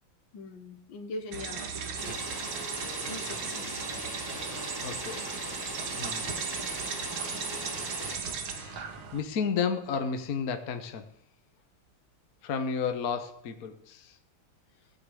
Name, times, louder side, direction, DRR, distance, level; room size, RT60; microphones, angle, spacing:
voice 1, 0.3-1.7 2.0-2.4 3.1-3.9, left 3 dB, 70° left, 8 dB, 2.0 m, -42 dB
sound 1, 1.3-9.2, right 6 dB, 75° right, 2.3 m, -36 dB
sound 2, 2.0-8.2, equal, 10° left, 2.6 m, -40 dB
voice 2, 4.8-5.3 6.0-6.3 8.4-11.0 12.4-14.1, left 6 dB, 50° left, 7 dB, 1.4 m, -32 dB
17.5 x 6.7 x 8.3 m, 0.70 s
omnidirectional pair, 2.3 m